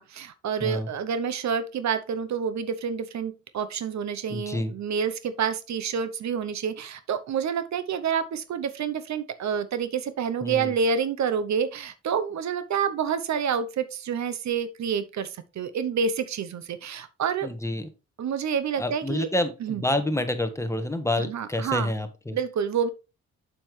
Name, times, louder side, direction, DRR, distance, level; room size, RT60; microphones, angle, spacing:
voice 1, 0.0-17.5 18.2-19.3 19.6-19.8 21.2-21.9 22.3-22.9, right 7 dB, 70° right, 0.9 m, -28 dB
voice 2, 4.3-4.7 10.4-10.7 17.4-17.9 18.8-22.4, left 1 dB, 10° left, 1.3 m, -28 dB
7.5 x 6.8 x 3.2 m
cardioid pair, 90°, 29 cm